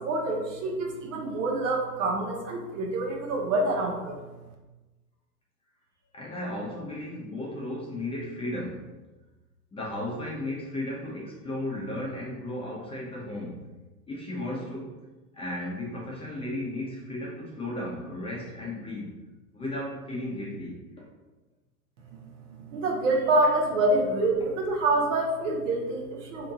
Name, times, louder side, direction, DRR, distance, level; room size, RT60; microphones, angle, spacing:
voice 1, 0.0-4.2 22.7-26.5, right 2 dB, 55° right, 0 dB, 0.9 m, -26 dB
voice 2, 6.1-8.9 9.7-13.7 14.1-14.9 15.3-19.1 19.5-20.8, left 1 dB, 10° left, -5 dB, 0.9 m, -35 dB
3.5 x 2.9 x 3.8 m, 1.2 s
figure-of-eight pair, 95°, 46 cm